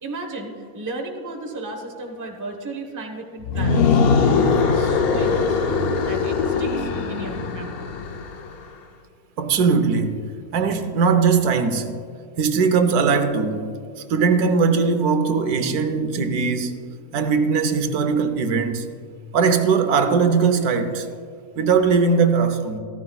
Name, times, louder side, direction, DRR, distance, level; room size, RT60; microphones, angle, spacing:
voice 1, 0.0-4.0 4.6-5.7 6.1-7.9, right 2 dB, 15° right, 0.9 m, -34 dB
sound 1, 3.4-8.5, left 5 dB, 60° left, 0.6 m, -21 dB
voice 2, 9.4-10.2 10.5-11.9 12.4-13.7 14.1-16.8 17.1-18.9 19.3-21.1 21.6-22.8, right 5 dB, 75° right, 1.3 m, -20 dB
14.5 x 13.5 x 2.3 m
omnidirectional pair, 1.6 m